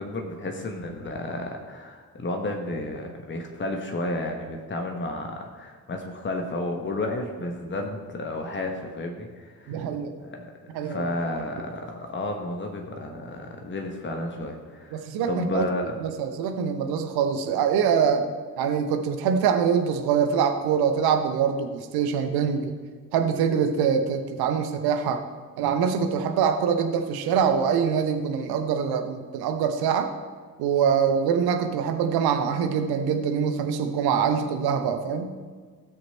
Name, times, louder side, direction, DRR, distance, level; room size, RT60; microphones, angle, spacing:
voice 1, 0.0-9.8 10.2-16.0, left 2 dB, 25° left, 3 dB, 1.5 m, -32 dB
voice 2, 9.7-10.1 10.7-11.1 14.9-22.7 23.1-25.2 25.6-30.1 30.6-35.3, right 7 dB, 55° right, 7 dB, 1.1 m, -24 dB
17.5 x 6.4 x 4.3 m, 1.6 s
figure-of-eight pair, 40°, 44 cm